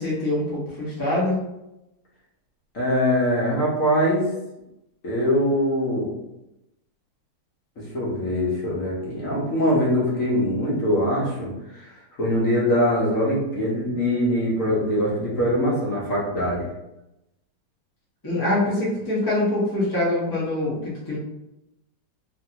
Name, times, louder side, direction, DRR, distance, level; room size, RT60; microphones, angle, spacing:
voice 1, 0.0-1.4 18.2-21.2, left 1 dB, 20° left, -7 dB, 0.5 m, -24 dB
voice 2, 2.7-4.2 5.0-6.1 7.8-11.9 12.2-16.7, equal, 55° left, -6 dB, 1.1 m, -23 dB
3.0 x 2.7 x 2.8 m, 0.91 s
omnidirectional pair, 2.0 m